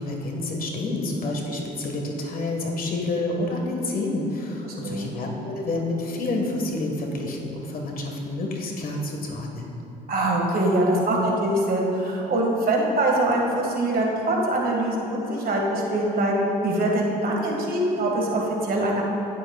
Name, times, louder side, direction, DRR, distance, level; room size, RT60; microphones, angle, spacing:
voice 1, 0.0-9.7, left 2 dB, 45° left, 1 dB, 1.6 m, -29 dB
voice 2, 4.6-5.1 10.1-16.4 16.6-19.0, right 1 dB, 45° right, -1 dB, 2.0 m, -23 dB
15.0 x 7.7 x 2.4 m, 3.0 s
supercardioid pair, 70°, 20 cm